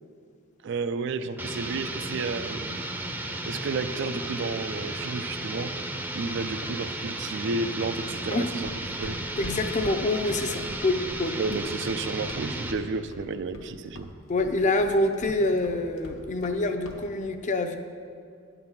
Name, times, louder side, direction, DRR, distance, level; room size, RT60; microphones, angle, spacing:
voice 1, 0.6-2.8 3.5-5.7 6.1-8.7 9.0-9.2 11.4-14.1, right 4 dB, 65° right, 11 dB, 0.4 m, -32 dB
sound 1, 1.4-12.8, right 1 dB, 10° right, 0.6 m, -34 dB
Run, 8.6-12.9 13.1-13.7 14.0-16.6 16.8-17.0, left 1 dB, 70° left, 1.0 m, -43 dB
voice 2, 9.4-11.4 14.3-17.8, left 2 dB, 40° left, 7 dB, 0.5 m, -26 dB
10.5 x 4.0 x 7.3 m, 2.2 s
head